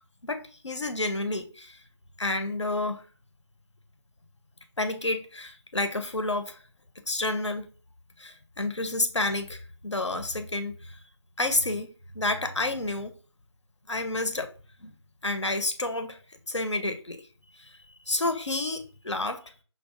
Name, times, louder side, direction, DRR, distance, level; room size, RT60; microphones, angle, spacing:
voice 1, 0.2-1.8 2.2-3.0 4.8-6.6 7.1-7.7 8.2-10.9 11.4-11.9 12.1-13.1 13.9-14.5 14.8-14.9 15.2-16.2 16.5-17.2 18.1-19.4, left 2 dB, 85° left, 0.6 m, -29 dB
5.1 x 2.2 x 2.4 m
figure-of-eight pair, 160°, 15 cm